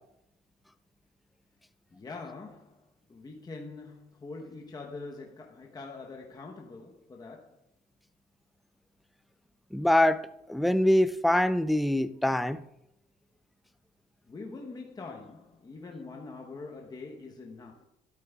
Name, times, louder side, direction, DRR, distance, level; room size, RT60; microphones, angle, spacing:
voice 1, 1.9-7.6 14.3-17.8, left 3 dB, 25° left, 1.0 m, -44 dB
voice 2, 9.7-12.6, left 1 dB, ahead, 0.3 m, -24 dB
12.5 x 12.5 x 2.3 m
cardioid pair, 110°, 17 cm